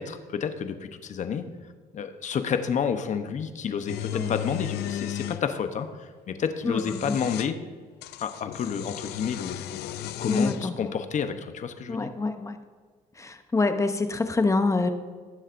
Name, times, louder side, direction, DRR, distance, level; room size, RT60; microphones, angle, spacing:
voice 1, 0.0-1.4 1.9-7.6 8.2-9.8 10.2-12.1, left 7 dB, 45° left, 8 dB, 0.9 m, -30 dB
sound 1, 3.9-5.4 6.6-7.5 8.0-10.7, left 13 dB, 75° left, 0.4 m, -35 dB
voice 2, 6.6-7.2 10.3-10.7 11.9-12.6 13.2-14.9, left 3 dB, 20° left, 8 dB, 0.7 m, -26 dB
19.0 x 7.3 x 2.6 m, 1.5 s
cardioid pair, 110°, 17 cm